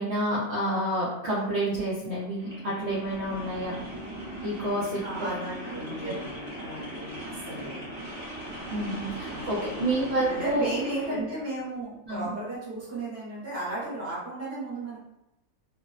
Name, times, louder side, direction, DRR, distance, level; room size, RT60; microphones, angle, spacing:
voice 1, 0.0-3.7 4.4-5.0 8.7-10.7 12.1-12.4, right 1 dB, 60° right, -7 dB, 0.7 m, -29 dB
sound 1, 2.4-11.2, right 1 dB, 35° right, 1.0 m, -39 dB
voice 2, 5.0-7.8 9.2-15.0, right 2 dB, 15° right, -8 dB, 0.7 m, -35 dB
2.6 x 2.0 x 2.4 m, 0.89 s
omnidirectional pair, 1.6 m